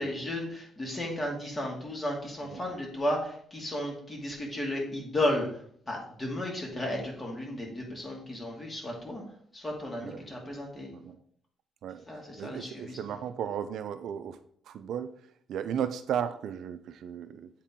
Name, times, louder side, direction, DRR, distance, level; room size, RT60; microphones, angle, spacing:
voice 1, 0.0-9.2 9.5-10.9 12.1-13.2, left 1 dB, 25° left, 0 dB, 2.3 m, -34 dB
voice 2, 12.4-14.4 14.7-15.1 15.5-17.5, right 9 dB, 75° right, 10 dB, 0.5 m, -35 dB
8.1 x 4.3 x 3.7 m, 0.63 s
cardioid pair, 90°, 0 cm